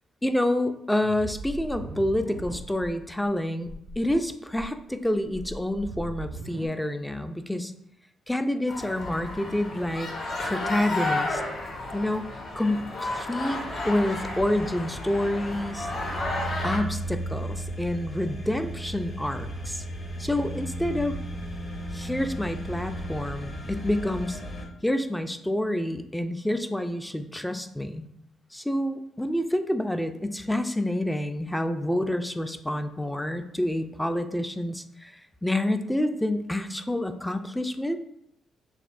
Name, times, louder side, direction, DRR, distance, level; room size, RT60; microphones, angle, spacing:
voice 1, 0.2-3.7 4.0-7.7 8.3-10.1 10.4-11.4 11.9-12.3 12.6-13.6 13.8-15.9 16.6-19.8 20.2-21.1 21.9-24.4 24.8-28.1 28.5-38.0, left 1 dB, 5° left, 8 dB, 0.3 m, -28 dB
sound 1, 1.0-2.9 3.2-3.3 3.6-4.1 4.5-6.7, right 2 dB, 85° right, 0.6 m, -39 dB
sound 2, 8.7-16.8, left 2 dB, 55° left, 1.5 m, -32 dB
sound 3, 13.5-24.7, right 1 dB, 35° left, 0.8 m, -36 dB
6.4 x 2.6 x 2.5 m, 0.76 s
cardioid pair, 90°, 0 cm